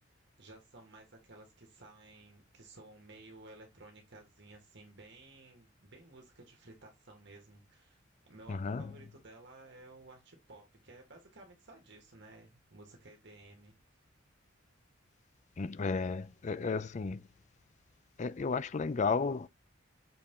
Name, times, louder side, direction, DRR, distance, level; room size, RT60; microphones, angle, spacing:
voice 1, 0.1-13.7, right 2 dB, 60° right, 2.0 m, -55 dB
voice 2, 8.5-9.0 15.6-17.3 18.2-19.5, left 4 dB, 35° left, 0.4 m, -33 dB
6.9 x 4.3 x 3.7 m
head